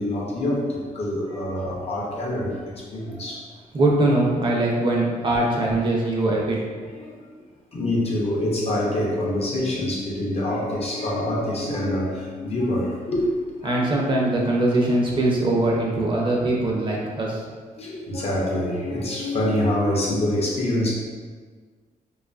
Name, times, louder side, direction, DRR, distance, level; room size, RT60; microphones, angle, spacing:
voice 1, 0.0-3.4 5.3-5.4 5.7-5.8 6.9-7.2 7.7-13.2 13.5-14.0 17.8-20.9, left 1 dB, 40° left, -3 dB, 0.6 m, -26 dB
voice 2, 3.7-6.6 13.6-17.4, right 2 dB, 35° right, -3 dB, 0.5 m, -22 dB
2.6 x 2.3 x 2.4 m, 1.6 s
cardioid pair, 110°, 15 cm